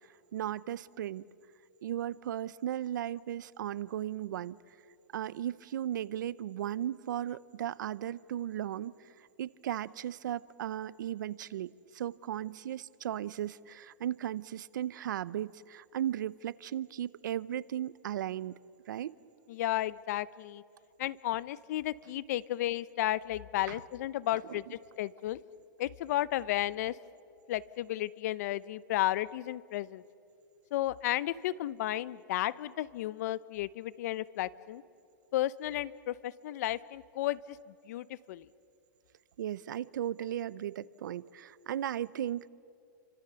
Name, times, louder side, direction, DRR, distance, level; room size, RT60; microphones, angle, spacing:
voice 1, 0.3-1.3 1.8-4.6 5.1-8.9 9.4-18.6 18.9-19.2 23.7-23.8 24.5-24.7 39.4-42.5, right 11 dB, 80° right, 20 dB, 0.7 m, -36 dB
voice 2, 19.5-20.6 21.0-25.4 25.8-27.0 27.5-30.0 30.7-34.8 35.3-37.6 37.9-38.4, left 14 dB, 55° left, 19 dB, 0.7 m, -33 dB
30.0 x 25.5 x 6.9 m, 2.6 s
hypercardioid pair, 150°, 10 cm